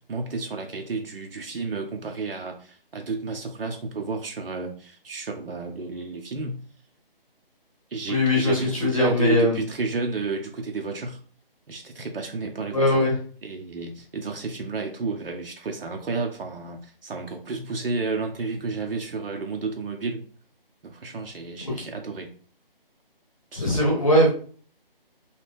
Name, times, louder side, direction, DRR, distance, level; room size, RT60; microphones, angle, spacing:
voice 1, 0.1-6.6 7.9-11.2 11.7-12.8 13.4-20.2 20.8-22.3 23.5-24.1, right 3 dB, 70° right, 3 dB, 0.6 m, -31 dB
voice 2, 8.1-9.6 12.7-13.2 21.6-21.9 23.5-24.3, left 1 dB, 35° left, -2 dB, 0.8 m, -21 dB
2.8 x 2.3 x 3.3 m, 0.44 s
hypercardioid pair, 175°, 29 cm